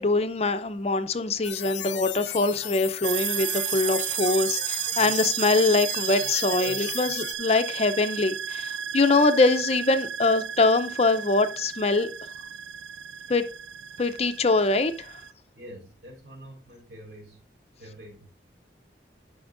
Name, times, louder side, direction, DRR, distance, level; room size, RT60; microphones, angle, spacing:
voice 1, 0.0-12.1 13.3-13.4 14.0-15.1, left 3 dB, 35° left, 0.6 m, -23 dB
sound 1, 1.4-7.3, left 12 dB, 85° left, 0.7 m, -36 dB
sound 2, 3.0-15.3, right 11 dB, 90° right, 0.4 m, -33 dB
voice 2, 15.5-17.4 17.8-18.3, right 1 dB, 70° right, 4.3 m, -45 dB
11.5 x 5.7 x 2.6 m
head